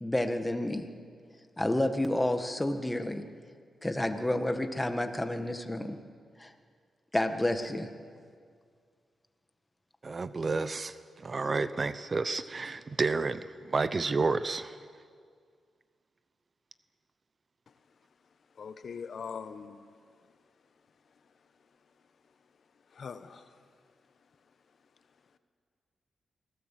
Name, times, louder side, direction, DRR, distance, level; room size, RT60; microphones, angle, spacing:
voice 1, 0.0-0.9 1.6-3.2 3.8-6.0 6.4-6.5 7.1-7.9, left 1 dB, 15° left, 7 dB, 1.8 m, -30 dB
voice 2, 10.0-14.8, right 3 dB, 40° right, 13 dB, 0.8 m, -31 dB
voice 3, 18.6-19.8 22.9-23.5, left 6 dB, 60° left, 10 dB, 1.1 m, -41 dB
24.5 x 17.0 x 7.5 m, 2.1 s
cardioid pair, 80°, 0 cm